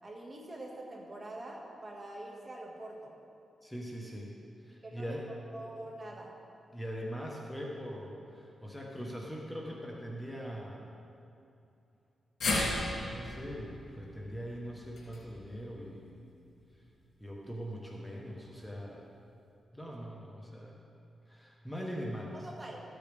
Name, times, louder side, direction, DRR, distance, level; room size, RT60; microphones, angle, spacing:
voice 1, 0.0-3.1 4.8-6.3 22.3-22.8, right 1 dB, 30° right, -1 dB, 1.9 m, -45 dB
voice 2, 3.6-4.3 4.6-5.3 6.7-10.9 13.1-16.3 17.2-19.0 19.7-20.8 21.3-22.4, equal, 5° left, -2 dB, 1.2 m, -41 dB
sound 1, 12.4-16.7 17.0-17.1 18.3-18.4, left 2 dB, 75° left, 2.6 m, -37 dB
14.0 x 8.4 x 3.5 m, 2.6 s
cardioid pair, 85°, 0 cm